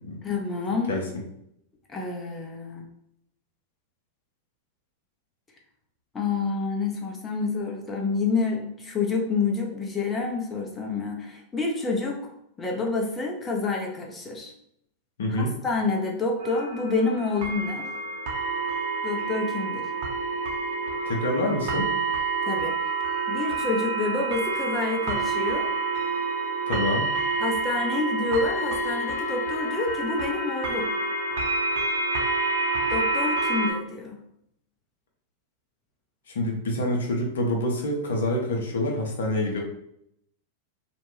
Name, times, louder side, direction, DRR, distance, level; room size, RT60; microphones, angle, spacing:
voice 1, 0.2-0.9 1.9-2.8 6.1-12.2 12.6-14.5 15.3-17.9 19.0-19.9 22.4-22.7 23.3-25.7 27.4-30.9 32.9-34.2, left 3 dB, 20° left, 0 dB, 0.7 m, -28 dB
voice 2, 15.2-15.5 21.0-21.9 26.7-27.1 36.3-39.6, left 1 dB, 70° left, 1 dB, 0.7 m, -26 dB
sound 1, 16.4-33.7, right 3 dB, 55° right, 0.8 m, -28 dB
2.5 x 2.2 x 3.1 m, 0.73 s
figure-of-eight pair, 95°, 0 cm